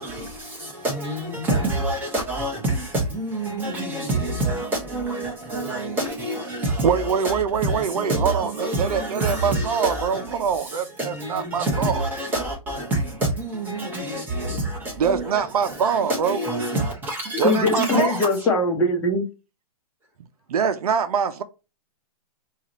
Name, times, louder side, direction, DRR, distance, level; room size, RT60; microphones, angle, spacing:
voice 1, 0.0-18.5, right 1 dB, 10° right, 1.2 m, -27 dB
voice 2, 6.8-11.9 15.0-16.4 17.4-18.2 20.5-21.4, right 7 dB, 75° right, 0.7 m, -24 dB
voice 3, 17.4-19.3, left 2 dB, 15° left, 0.9 m, -21 dB
4.6 x 2.5 x 3.0 m
hypercardioid pair, 160°, 19 cm